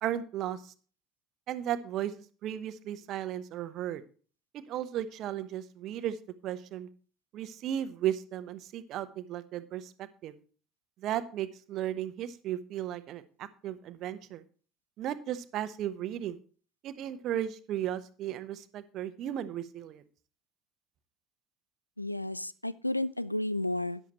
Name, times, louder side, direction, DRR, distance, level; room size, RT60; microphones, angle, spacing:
voice 1, 0.0-0.7 1.5-2.1 2.4-4.0 4.5-6.2 6.4-6.9 7.3-10.3 11.0-14.4 15.0-16.4 16.8-20.0, right 11 dB, 50° right, 13 dB, 0.9 m, -35 dB
voice 2, 22.0-24.0, left 1 dB, 90° left, 19 dB, 0.4 m, -32 dB
13.0 x 10.5 x 3.0 m, 0.40 s
figure-of-eight pair, 65°, 0 cm